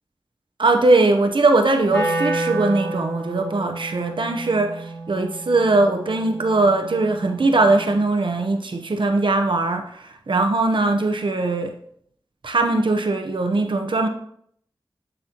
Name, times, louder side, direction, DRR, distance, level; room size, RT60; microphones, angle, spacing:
voice 1, 0.6-11.7 12.4-14.1, right 2 dB, 65° right, 4 dB, 0.9 m, -20 dB
Wind instrument woodwind instrument, 1.9-8.0, right 2 dB, 30° left, 2.8 m, -30 dB
7.9 x 6.7 x 2.9 m, 0.66 s
wide cardioid pair, 65°, 9 cm